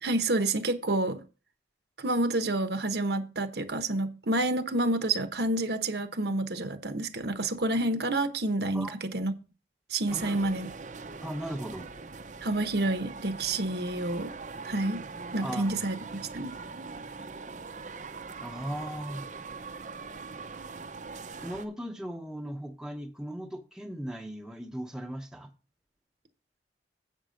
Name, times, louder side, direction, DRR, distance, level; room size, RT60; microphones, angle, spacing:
voice 1, 0.0-1.2 2.0-9.3 9.9-10.7 12.4-14.3 14.6-15.0 15.3-15.9 16.3-16.5, right 2 dB, 65° right, 1.0 m, -29 dB
sound 1, 10.1-21.6, right 4 dB, 45° right, 0.7 m, -42 dB
voice 2, 11.2-11.9 15.4-15.9 18.4-19.3 21.4-25.5, right 1 dB, 5° right, 1.0 m, -38 dB
8.1 x 5.4 x 6.4 m
head